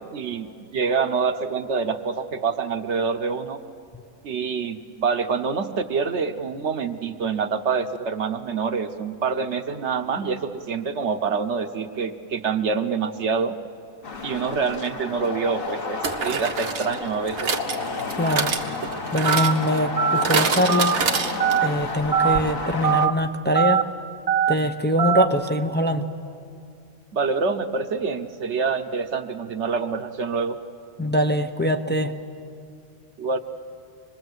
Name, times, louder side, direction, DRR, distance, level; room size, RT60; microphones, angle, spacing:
voice 1, 0.0-3.6 4.2-13.6 14.2-17.5 27.1-30.6 33.2-33.4, right 5 dB, 60° right, 8 dB, 1.1 m, -26 dB
sound 1, 14.0-23.1, left 4 dB, 45° left, 1.2 m, -32 dB
sound 2, 14.7-14.9 16.0-21.8 22.1-22.2 22.4-22.5, right 5 dB, 85° right, 1.7 m, -27 dB
voice 2, 18.1-18.5 19.1-21.0 21.6-23.8 24.5-26.1 31.0-32.1, equal, 15° left, 6 dB, 0.4 m, -23 dB
Telephone, 19.3-19.5 20.0-20.2 20.7-21.0 21.4-21.7 22.1-22.4 22.8-23.1 23.6-23.8 24.3-24.5 25.0-25.3, right 7 dB, 40° right, 0.6 m, -20 dB
26.0 x 21.0 x 8.0 m, 2.5 s
omnidirectional pair, 1.5 m